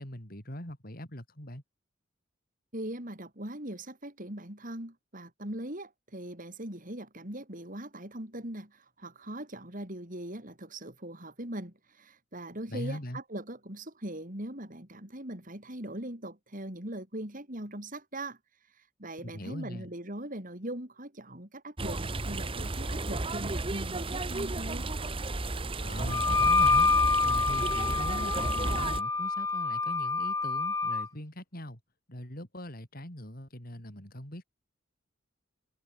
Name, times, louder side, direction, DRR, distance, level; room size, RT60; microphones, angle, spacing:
voice 1, 0.0-1.6 12.7-13.2 19.2-19.9 25.8-26.9 27.2-31.8 32.1-34.4, equal, 50° left, 5.8 m, -41 dB
voice 2, 2.7-18.4 19.0-24.9, right 1 dB, 45° right, 6.6 m, -40 dB
sound 1, 21.8-29.0, right 2 dB, 30° right, 1.1 m, -33 dB
Wind instrument woodwind instrument, 26.1-31.1, left 4 dB, 15° left, 1.2 m, -27 dB
head